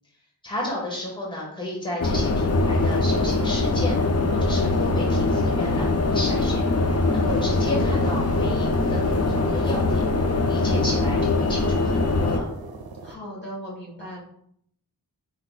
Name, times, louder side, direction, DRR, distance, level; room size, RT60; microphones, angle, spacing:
voice 1, 0.4-4.0 4.3-6.6 7.1-10.0 10.5-12.4, left 1 dB, 15° left, -4 dB, 1.7 m, -32 dB
sound 1, 2.0-12.4, left 2 dB, 45° left, 0.5 m, -22 dB
sound 2, 3.9-13.1, right 4 dB, 75° right, 0.6 m, -41 dB
voice 2, 13.0-14.2, equal, 30° left, -6 dB, 1.7 m, -37 dB
4.7 x 3.9 x 2.4 m, 0.69 s
wide cardioid pair, 40°, 36 cm